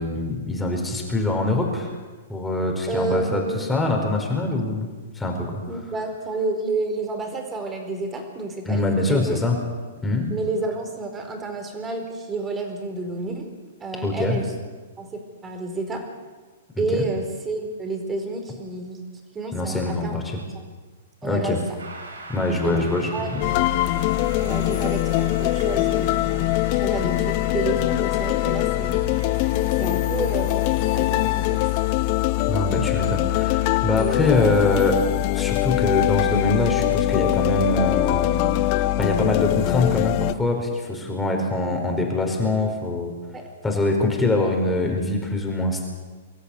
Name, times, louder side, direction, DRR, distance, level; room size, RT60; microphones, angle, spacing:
voice 1, 0.0-1.9 2.3-5.6 8.7-9.6 10.0-10.3 14.0-14.4 16.8-17.0 19.5-20.4 21.2-21.6 22.3-23.5 32.5-35.0 35.3-38.4 39.0-43.1 43.6-45.9, left 2 dB, 10° left, 1 dB, 4.7 m, -24 dB
voice 2, 2.9-3.6 5.7-9.4 10.3-13.5 13.8-14.5 15.0-16.0 16.8-19.0 19.3-20.2 20.5-20.6 21.2-21.6 22.6-23.3 24.4-29.1 29.8-30.6 30.9-31.6 43.3-43.4, right 3 dB, 20° right, 4 dB, 4.7 m, -30 dB
sound 1, 21.8-31.9, right 2 dB, 85° right, 4.8 m, -43 dB
sound 2, 23.4-40.3, left 16 dB, 45° left, 0.8 m, -22 dB
25.0 x 13.5 x 8.6 m, 1.3 s
figure-of-eight pair, 110°, 0 cm